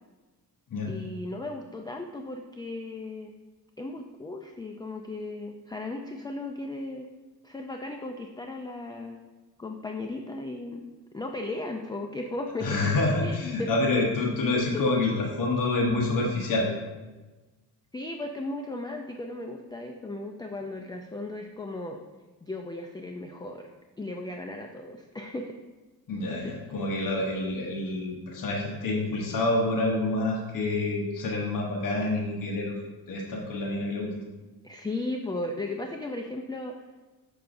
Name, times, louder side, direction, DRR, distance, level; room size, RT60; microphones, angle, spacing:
voice 1, 0.9-3.4 3.8-7.1 7.4-9.2 9.6-10.8 11.1-12.8 13.2-13.7 14.7-14.8 17.9-22.0 22.4-23.7 24.0-25.6 26.4-26.5 34.6-36.7, left 2 dB, 10° left, 3 dB, 0.3 m, -36 dB
voice 2, 12.6-16.7 26.1-32.7 33.1-34.1, left 2 dB, 55° left, -1 dB, 1.0 m, -27 dB
6.8 x 5.7 x 2.6 m, 1.2 s
cardioid pair, 95°, 39 cm